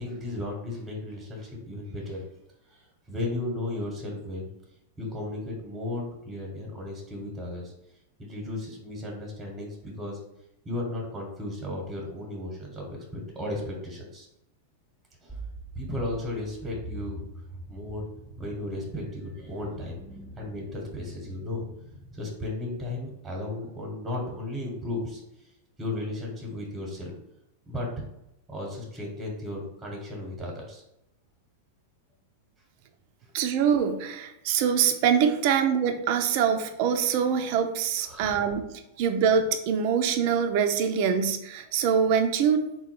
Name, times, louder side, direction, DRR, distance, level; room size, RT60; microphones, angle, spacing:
voice 1, 0.0-2.2 2.7-4.5 5.0-7.7 8.2-10.2 10.6-14.3 15.2-15.4 15.7-17.2 17.7-18.1 18.4-20.0 20.4-21.6 22.1-25.2 25.8-27.1 27.7-28.0 28.5-30.8 38.0-38.4, left 1 dB, 10° right, -1 dB, 1.1 m, -35 dB
sound 1, 15.3-22.2, right 1 dB, 10° left, 0.7 m, -44 dB
voice 2, 33.3-38.7 39.0-42.7, right 7 dB, 55° right, 6 dB, 0.5 m, -24 dB
3.9 x 2.3 x 4.4 m, 0.86 s
hypercardioid pair, 120°, 0 cm